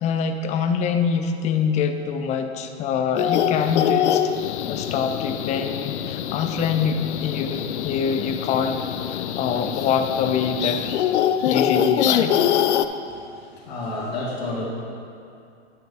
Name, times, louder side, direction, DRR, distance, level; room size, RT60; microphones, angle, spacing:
voice 1, 0.0-4.3 4.7-10.8 11.4-12.4, left 6 dB, 20° left, 7 dB, 0.4 m, -25 dB
sound 1, 3.2-12.9, left 10 dB, 80° left, 0.5 m, -24 dB
voice 2, 13.1-14.7, left 2 dB, 60° left, -5 dB, 1.9 m, -31 dB
9.4 x 6.4 x 3.4 m, 2.5 s
hypercardioid pair, 105°, 34 cm